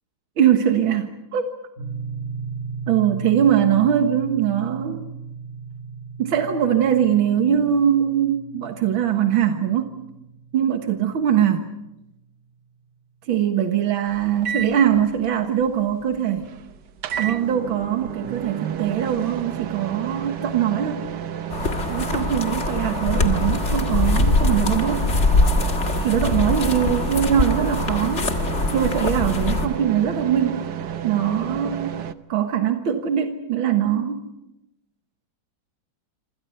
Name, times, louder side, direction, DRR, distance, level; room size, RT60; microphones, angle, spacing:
voice 1, 0.4-1.5 2.9-5.1 6.2-9.9 10.5-11.7 13.3-16.5 17.2-21.0 21.9-25.1 26.0-28.3 28.7-30.7 31.0-32.0 32.3-34.2, right 9 dB, 85° right, 6 dB, 2.3 m, -21 dB
sound 1, 1.8-11.9, right 5 dB, 45° right, 3.5 m, -36 dB
sound 2, 14.1-32.1, right 9 dB, 60° right, 1.5 m, -32 dB
sound 3, 21.5-29.7, left 3 dB, 35° left, 1.9 m, -22 dB
27.5 x 26.5 x 5.6 m, 0.88 s
omnidirectional pair, 2.1 m